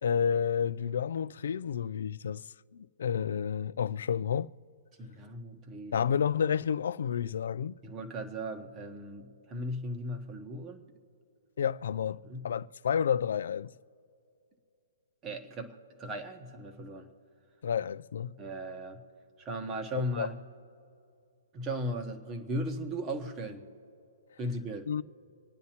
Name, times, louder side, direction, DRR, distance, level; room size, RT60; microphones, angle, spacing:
voice 1, 0.0-4.5 5.9-7.8 11.6-13.7 17.6-18.4 19.9-20.3 24.9-25.0, left 8 dB, 65° left, 0.4 m, -30 dB
voice 2, 5.0-6.0 7.8-10.8 12.2-12.5 15.2-17.1 18.4-19.0 19.4-20.3 21.5-23.7 24.4-24.9, right 1 dB, 15° right, 1.1 m, -37 dB
26.5 x 9.4 x 2.9 m
hypercardioid pair, 170°, 0 cm